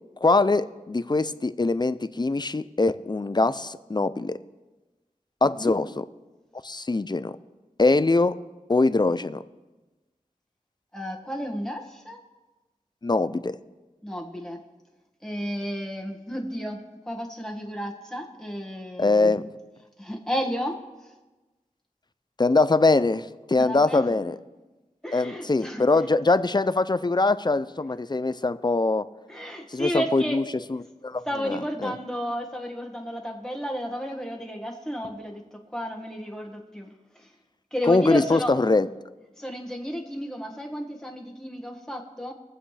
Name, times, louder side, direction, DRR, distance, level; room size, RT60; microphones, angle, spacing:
voice 1, 0.2-4.3 5.4-5.9 6.6-7.3 7.8-8.4 8.7-9.4 13.0-13.5 19.0-19.5 22.4-24.3 25.1-29.0 29.7-30.4 30.7-31.9 37.9-38.9, left 3 dB, 30° left, 14 dB, 0.5 m, -23 dB
voice 2, 10.9-12.2 14.0-14.6 15.2-16.8 17.0-19.3 20.0-20.8 23.5-24.1 25.0-25.8 29.3-30.5 31.2-37.3 37.7-38.5 39.4-42.3, equal, 5° left, 1 dB, 1.6 m, -32 dB
22.5 x 7.6 x 3.3 m, 1.2 s
wide cardioid pair, 55°, 14 cm